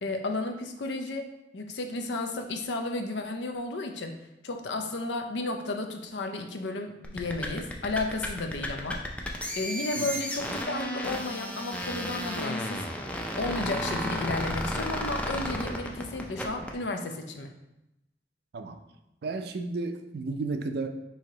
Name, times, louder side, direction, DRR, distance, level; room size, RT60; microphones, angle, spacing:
voice 1, 0.0-1.3 1.5-4.2 4.4-9.0 9.5-12.8 13.4-17.5, left 2 dB, 85° left, 5 dB, 0.5 m, -33 dB
sound 1, 7.0-16.8, equal, 10° left, 0.4 m, -33 dB
voice 2, 19.2-20.9, right 3 dB, 65° right, 7 dB, 0.4 m, -33 dB
4.6 x 2.8 x 3.9 m, 0.88 s
head